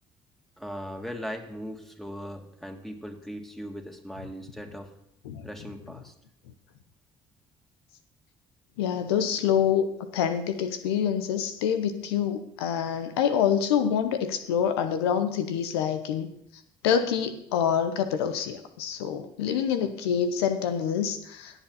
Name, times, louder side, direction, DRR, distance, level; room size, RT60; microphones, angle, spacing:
voice 1, 0.6-4.9 5.4-6.1, equal, ahead, 3 dB, 2.4 m, -39 dB
voice 2, 8.8-9.9 10.1-16.3 16.8-21.6, left 8 dB, 90° left, 9 dB, 0.8 m, -26 dB
17.0 x 7.2 x 4.1 m, 0.76 s
hypercardioid pair, 60°, 13 cm